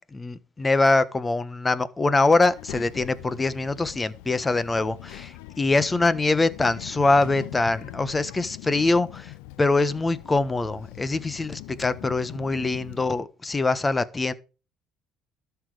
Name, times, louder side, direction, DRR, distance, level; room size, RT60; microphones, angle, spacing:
voice 1, 0.1-9.3 9.6-14.3, left 3 dB, 20° left, 1.3 m, -23 dB
Child speech kid speaking, 2.4-13.2, left 17 dB, 85° left, 0.6 m, -42 dB
12.5 x 7.1 x 5.0 m
supercardioid pair, 75°, 0 cm